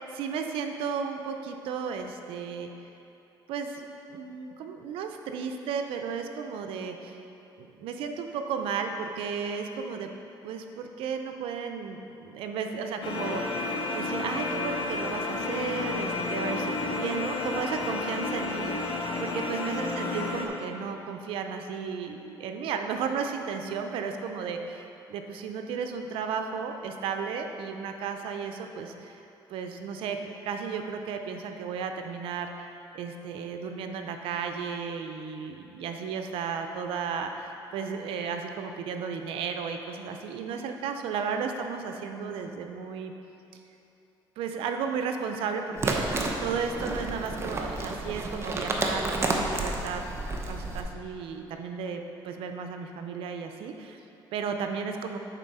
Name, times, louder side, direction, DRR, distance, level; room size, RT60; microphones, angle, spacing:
voice 1, 0.0-2.7 3.5-3.8 4.1-7.2 7.6-10.1 10.4-13.7 13.9-18.7 19.2-29.2 29.5-43.1 43.5-43.6 44.4-50.0 50.4-54.0 54.3-55.2, right 6 dB, 85° right, 5 dB, 0.6 m, -34 dB
sound 1, 13.0-20.5, left 3 dB, 60° left, 0.9 m, -31 dB
sound 2, 45.8-50.8, right 2 dB, 30° right, 0.8 m, -30 dB
8.2 x 4.1 x 5.5 m, 2.9 s
cardioid pair, 100°, 9 cm